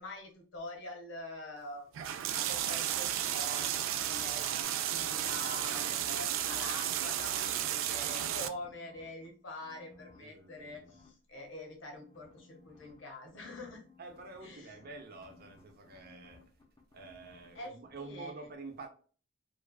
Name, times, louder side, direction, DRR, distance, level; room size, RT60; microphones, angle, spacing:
voice 1, 0.0-1.9 2.3-13.9 14.4-14.8 17.5-18.3, left 2 dB, 70° left, 1.0 m, -45 dB
sound 1, 1.9-8.5, right 11 dB, 85° right, 0.3 m, -33 dB
sound 2, 4.6-6.9 7.2-9.3 9.6-11.1 11.9-17.6 17.8-18.0, left 3 dB, 20° left, 0.6 m, -60 dB
voice 2, 10.2-10.9 14.0-16.4 16.9-18.9, right 3 dB, 50° right, 0.6 m, -48 dB
3.1 x 2.3 x 2.3 m
head